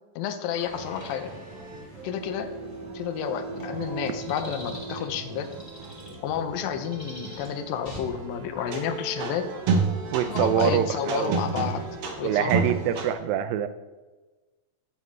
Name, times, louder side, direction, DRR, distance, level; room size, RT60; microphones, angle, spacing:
voice 1, 0.2-1.3 2.0-2.5 2.9-5.5 6.2-9.5 10.3-11.9 12.2-12.6, left 8 dB, 85° left, 8 dB, 2.4 m, -30 dB
sound 1, 0.5-12.8, left 2 dB, 55° left, 0.5 m, -45 dB
sound 2, 0.7-13.1, right 4 dB, 75° right, 1.4 m, -32 dB
voice 2, 10.1-11.6 12.2-13.7, right 9 dB, 90° right, 11 dB, 2.3 m, -25 dB
14.5 x 5.2 x 3.2 m, 1.2 s
omnidirectional pair, 4.0 m